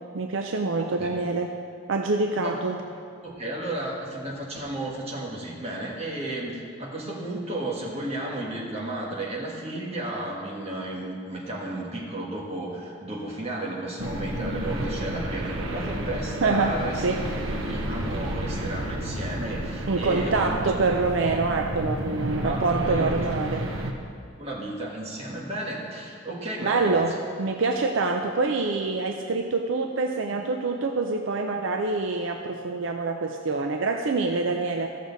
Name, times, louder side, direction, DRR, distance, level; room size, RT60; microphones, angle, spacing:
voice 1, 0.1-1.5 1.9-2.8 16.4-17.2 19.9-23.7 26.6-34.9, right 3 dB, 70° right, 4 dB, 0.5 m, -26 dB
voice 2, 0.8-1.3 2.4-2.6 3.2-17.1 17.5-20.6 22.3-23.1 24.4-27.2, right 1 dB, 30° right, -3 dB, 1.6 m, -33 dB
sound 1, 14.0-23.9, right 1 dB, 85° right, 1.0 m, -31 dB
15.0 x 6.6 x 4.0 m, 2.3 s
head